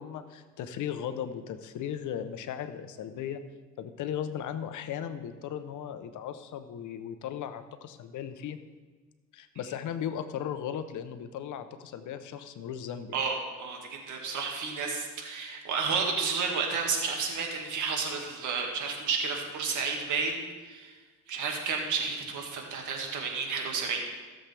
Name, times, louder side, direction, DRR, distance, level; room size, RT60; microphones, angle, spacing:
voice 1, 0.0-3.4 3.8-8.6 9.3-13.2, left 9 dB, 80° left, 10 dB, 0.8 m, -37 dB
voice 2, 13.1-20.9 21.3-24.0, right 5 dB, 80° right, 1 dB, 2.0 m, -31 dB
16.0 x 7.4 x 3.4 m, 1.4 s
cardioid pair, 90°, 30 cm